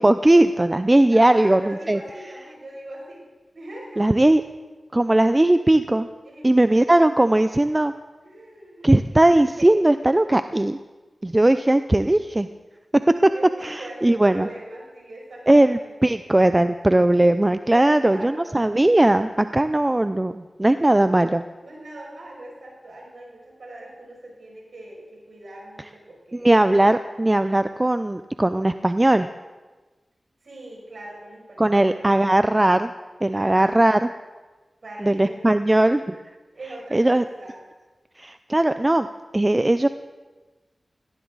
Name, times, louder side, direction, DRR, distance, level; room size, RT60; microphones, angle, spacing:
voice 1, 0.0-2.0 4.0-4.4 4.9-6.1 6.4-7.9 8.8-10.8 11.2-12.5 13.2-13.3 13.6-14.5 15.5-21.4 26.3-29.3 31.6-32.9 33.2-34.0 35.0-36.2 36.9-37.2 38.2-39.1 39.3-39.9, right 1 dB, 25° right, 11 dB, 0.5 m, -18 dB
voice 2, 1.1-3.2 3.5-4.0 6.2-6.9 8.2-8.9 9.6-9.7 13.3-16.2 17.7-18.6 20.8-21.2 21.6-26.5 30.4-32.3 33.3-33.8 34.8-35.5 36.5-37.6, right 1 dB, 70° right, -3 dB, 6.3 m, -40 dB
18.0 x 17.5 x 4.0 m, 1.2 s
cardioid pair, 55°, 0 cm